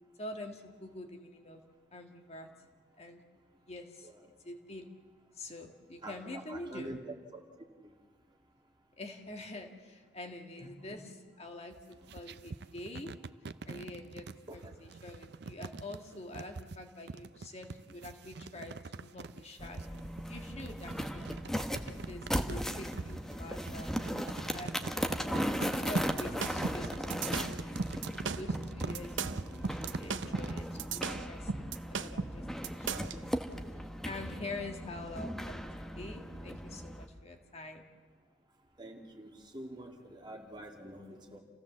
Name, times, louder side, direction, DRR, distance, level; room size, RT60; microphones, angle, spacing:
voice 1, 0.2-1.6 1.9-2.5 3.0-3.2 3.6-4.1 4.4-4.9 5.3-7.0 9.0-13.2 13.6-19.9 20.3-21.4 21.8-23.9 24.5-25.2 25.7-27.9 28.4-33.0 33.7-37.8, left 2 dB, 35° left, 3 dB, 1.9 m, -46 dB
voice 2, 6.0-7.0 7.3-7.4 10.6-11.0 14.5-14.6 38.8-41.4, right 1 dB, 25° right, 2 dB, 2.4 m, -46 dB
sound 1, 11.7-30.8, right 4 dB, 60° right, 0.6 m, -44 dB
sound 2, 19.6-37.1, equal, ahead, 1.1 m, -37 dB
sound 3, 26.0-33.2, right 4 dB, 90° right, 0.9 m, -36 dB
29.0 x 16.0 x 7.4 m, 1.5 s
head